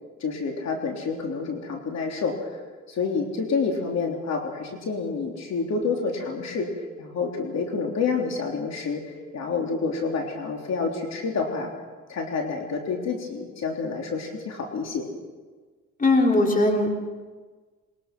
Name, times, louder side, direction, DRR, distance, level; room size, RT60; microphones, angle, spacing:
voice 1, 0.2-2.6 2.9-11.7 12.1-15.1, left 4 dB, 60° left, 2 dB, 3.4 m, -28 dB
voice 2, 16.0-16.9, left 2 dB, 25° left, 2 dB, 3.9 m, -19 dB
22.0 x 21.5 x 6.1 m, 1.4 s
cardioid pair, 90°, 30 cm